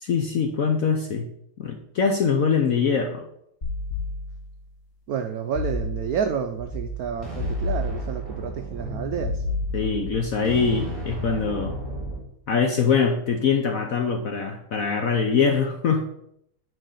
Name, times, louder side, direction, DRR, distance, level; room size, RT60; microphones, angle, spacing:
voice 1, 0.0-1.3 1.6-3.2 9.7-11.8 12.5-16.1, left 5 dB, 65° left, 4 dB, 0.8 m, -23 dB
sound 1, 3.6-4.6 5.5-6.4 7.4-8.5 9.2-10.3, left 2 dB, 30° left, 1.3 m, -30 dB
voice 2, 5.1-9.4, right 7 dB, 80° right, 7 dB, 0.8 m, -29 dB
sound 2, 6.6-12.2, right 1 dB, ahead, 3.3 m, -34 dB
6.2 x 4.6 x 6.3 m, 0.74 s
omnidirectional pair, 2.2 m